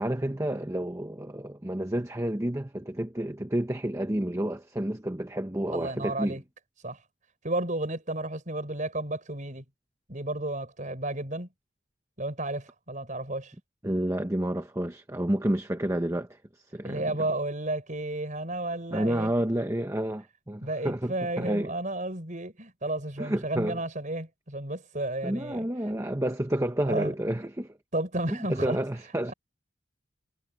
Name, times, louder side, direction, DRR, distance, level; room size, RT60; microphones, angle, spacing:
voice 1, 0.0-6.4 13.8-16.4 16.7-17.2 18.9-21.7 23.2-23.8 25.2-27.8 28.3-29.3, right 1 dB, 15° right, 1.0 m, -30 dB
voice 2, 5.7-6.4 6.8-7.0 7.4-9.6 10.1-11.5 12.2-13.5 16.8-19.3 20.6-25.7 26.9-27.1 27.9-28.8 29.3-29.4, right 2 dB, 40° right, 6.3 m, -32 dB
head